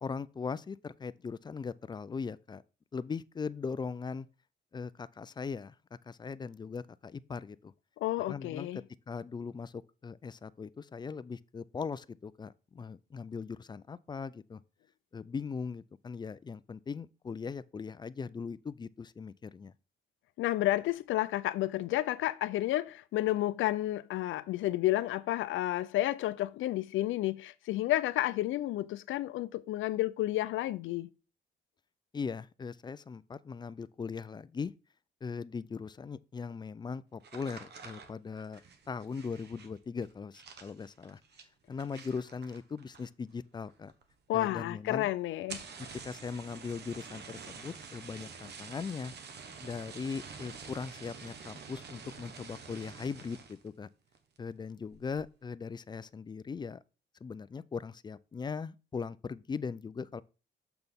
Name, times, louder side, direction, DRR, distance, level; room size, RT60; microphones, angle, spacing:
voice 1, 0.0-2.6 2.9-4.3 4.7-5.7 6.1-7.7 8.3-8.7 9.1-14.6 15.1-19.7 32.1-34.7 35.2-38.6 38.9-41.2 41.7-43.9 44.3-45.1 46.0-49.1 49.6-53.9 54.4-56.8 57.2-60.2, left 5 dB, 20° left, 0.3 m, -39 dB
voice 2, 8.0-8.8 20.4-31.1 44.3-45.6, left 15 dB, 80° left, 0.5 m, -31 dB
sound 1, 37.2-43.3 43.6-44.1 44.4-44.5 44.8-44.9 45.3-53.7 54.1-54.5 54.9-55.3, right 5 dB, 60° right, 1.2 m, -48 dB
6.8 x 6.0 x 3.5 m
cardioid pair, 90°, 20 cm